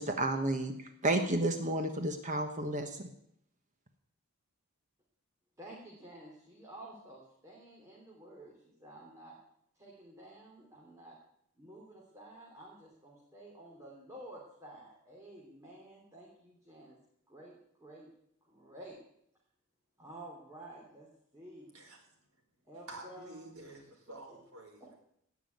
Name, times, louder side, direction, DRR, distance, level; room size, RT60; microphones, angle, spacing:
voice 1, 0.0-3.1, right 1 dB, 35° right, 6 dB, 1.2 m, -32 dB
voice 2, 5.6-9.4 9.7-11.2 11.6-17.0 17.3-18.1 18.4-19.0 20.0-21.1 21.3-21.7 22.6-23.4 24.3-24.4 24.8-24.9, right 1 dB, 15° right, -4 dB, 3.3 m, -51 dB
voice 3, 22.9-24.9, right 2 dB, 70° right, 2 dB, 4.6 m, -49 dB
18.0 x 6.2 x 9.4 m, 0.73 s
head